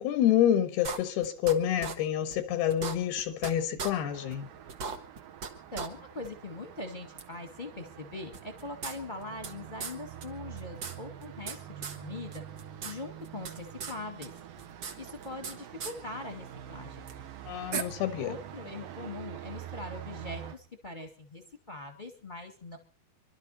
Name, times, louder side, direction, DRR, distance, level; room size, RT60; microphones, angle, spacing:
voice 1, 0.0-4.5 17.5-18.3, left 10 dB, 85° left, 3.3 m, -28 dB
sound 1, 0.8-1.5 1.8-1.9 2.3-2.4 2.7-3.5 3.8-3.9 4.3-4.4 4.7-5.5 5.7-5.9 6.2-6.3 7.2-7.3 8.3-9.5 9.8-9.9 10.2-10.3 10.6-11.6 11.8-12.0 12.3-12.9 13.2-13.9 14.2-15.5 15.8-15.9 17.1-17.2 17.7-17.8, right 5 dB, 55° right, 1.4 m, -37 dB
Traffic noise roadway noise, 4.0-20.6, right 10 dB, 70° right, 3.1 m, -46 dB
voice 2, 5.7-12.4 12.8-14.3 15.0-17.0 18.2-21.4 21.7-22.8, left 2 dB, 20° left, 1.5 m, -42 dB
26.5 x 12.5 x 4.2 m
omnidirectional pair, 4.4 m